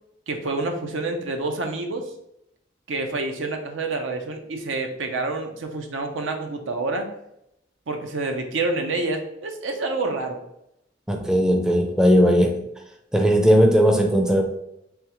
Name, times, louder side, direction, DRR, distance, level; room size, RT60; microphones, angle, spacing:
voice 1, 0.3-2.1 2.9-7.1 7.9-10.4, right 3 dB, 85° right, 4 dB, 0.6 m, -28 dB
voice 2, 11.1-12.7 13.1-14.4, equal, 5° right, 3 dB, 0.4 m, -18 dB
3.5 x 3.4 x 2.9 m, 0.80 s
head